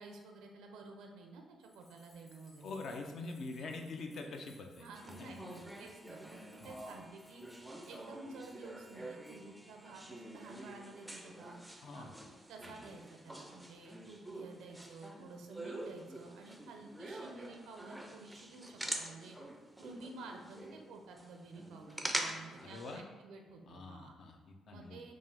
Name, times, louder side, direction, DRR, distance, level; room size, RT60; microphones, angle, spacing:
voice 1, 0.0-2.7 3.3-3.4 3.6-3.8 4.8-7.4 7.9-11.6 11.9-12.1 12.5-19.4 19.8-24.2 24.7-25.1, right 3 dB, 90° right, 3 dB, 0.5 m, -52 dB
sound 1, 1.6-8.1 8.3-8.5 8.8-9.4, left 2 dB, 40° left, 0.8 m, -66 dB
voice 2, 2.6-5.4 6.6-6.7 11.8-12.1 12.6-12.8 22.6-23.0 23.7-25.1, left 3 dB, 60° left, 3 dB, 0.5 m, -45 dB
sound 2, 5.0-23.0, right 1 dB, 5° right, 0.4 m, -46 dB
3.6 x 2.4 x 3.3 m, 1.3 s
cardioid pair, 90°, 0 cm